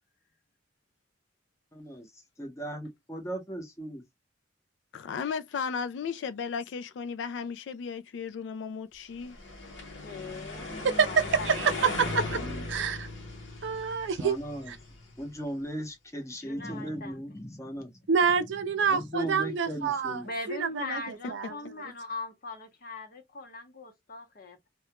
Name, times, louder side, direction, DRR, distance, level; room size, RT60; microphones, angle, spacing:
voice 1, 1.7-2.1 2.4-4.0 10.6-11.0 11.6-11.8 12.2-12.6 14.2-14.7 15.2-17.9 18.9-20.3, right 1 dB, 15° left, 0.8 m, -37 dB
voice 2, 4.9-9.4, left 6 dB, 70° left, 0.3 m, -35 dB
sound 1, 9.2-15.4, left 2 dB, 90° left, 0.8 m, -38 dB
voice 3, 9.8-10.7 11.0-12.0 16.4-17.2 20.2-24.7, left 3 dB, 50° left, 0.9 m, -40 dB
voice 4, 11.5-12.4 12.7-13.1 13.6-14.4 14.7-14.8 18.1-20.2 20.5-21.6, right 6 dB, 70° right, 0.4 m, -27 dB
2.3 x 2.2 x 2.8 m
head